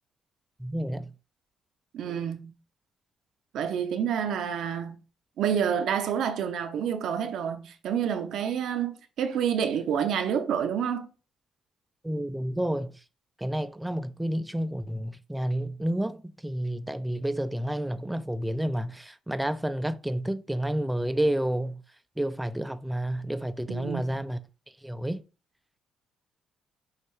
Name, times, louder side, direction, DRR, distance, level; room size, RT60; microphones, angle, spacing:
voice 1, 0.6-1.1 12.0-13.0 13.4-21.8 22.2-24.4 24.8-25.2, right 1 dB, 5° right, 0.3 m, -30 dB
voice 2, 1.9-2.5 3.5-5.0 5.4-11.1 23.7-24.2, right 8 dB, 75° right, 0.6 m, -28 dB
6.4 x 2.4 x 3.2 m
cardioid pair, 90°, 0 cm